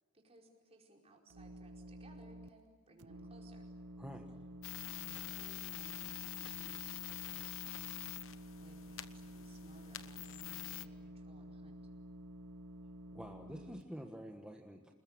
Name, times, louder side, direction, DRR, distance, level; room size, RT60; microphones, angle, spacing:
voice 1, 0.1-3.7 4.9-8.0 8.6-11.9, right 1 dB, 30° right, 0 dB, 4.8 m, -62 dB
sound 1, 1.3-2.5 3.0-13.8, right 1 dB, 85° right, 0.7 m, -51 dB
voice 2, 4.0-4.3 13.1-14.9, equal, 5° right, 1 dB, 1.3 m, -48 dB
sound 2, 4.6-10.9, left 14 dB, 65° left, 1.1 m, -46 dB
28.5 x 21.0 x 8.9 m, 1.5 s
head